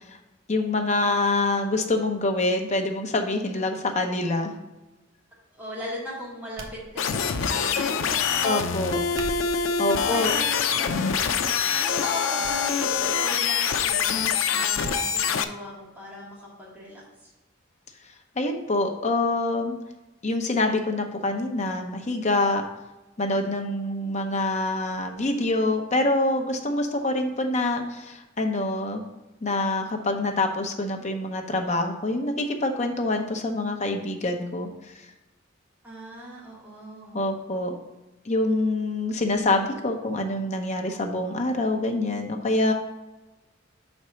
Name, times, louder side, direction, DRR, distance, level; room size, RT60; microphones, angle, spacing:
voice 1, 0.5-4.5 8.4-9.0 9.8-10.3 18.4-19.8 20.2-22.6 23.2-29.0 29.4-34.7 37.1-37.8 38.2-42.7, left 2 dB, 35° left, 4 dB, 0.8 m, -25 dB
voice 2, 5.5-9.1 9.9-11.3 11.7-17.3 35.8-37.2, equal, 10° right, -8 dB, 2.1 m, -38 dB
sound 1, 6.6-7.4 9.0-9.7 10.5-10.9 11.3-11.4 12.4-12.6 12.9-13.0 14.9-15.1 15.4-15.5, right 1 dB, 75° right, 1.0 m, -40 dB
sound 2, 7.0-15.4, left 6 dB, 85° left, 0.5 m, -25 dB
5.4 x 4.3 x 6.2 m, 1.1 s
head